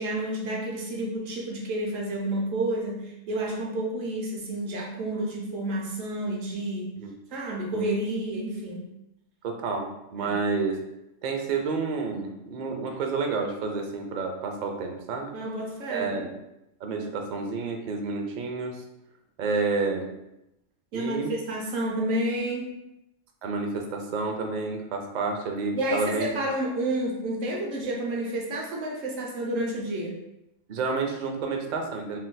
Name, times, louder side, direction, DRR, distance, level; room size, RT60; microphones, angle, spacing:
voice 1, 0.0-6.9 7.3-8.9 10.2-10.3 15.3-16.3 16.9-17.1 20.9-22.7 25.7-30.2, right 1 dB, 85° right, -1 dB, 1.1 m, -30 dB
voice 2, 9.4-10.8 11.2-15.3 15.9-16.3 16.8-18.8 19.4-20.1 20.9-21.3 23.4-26.4 30.7-32.2, right 4 dB, 70° right, 3 dB, 0.4 m, -29 dB
3.7 x 2.6 x 2.2 m, 0.86 s
omnidirectional pair, 1.3 m